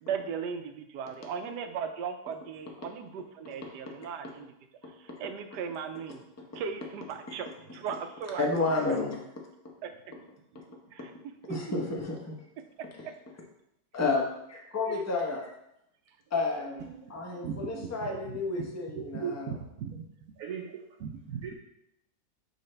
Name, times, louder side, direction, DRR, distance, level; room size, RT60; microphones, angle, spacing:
voice 1, 0.0-4.5 5.0-6.2 6.5-8.6 8.9-9.0 9.8-10.2 10.9-11.1 11.5-11.7 16.5-17.0 17.4-17.5, right 7 dB, 85° right, 8 dB, 1.2 m, -37 dB
voice 2, 8.4-9.2 11.5-12.4 13.9-15.5 16.3-16.8 17.1-19.6, left 3 dB, 15° left, 0 dB, 0.6 m, -31 dB
voice 3, 17.4-17.9 18.6-18.7 18.9-20.0 20.4-21.5, right 7 dB, 65° right, 1 dB, 0.9 m, -37 dB
6.5 x 4.7 x 3.3 m, 0.81 s
omnidirectional pair, 1.8 m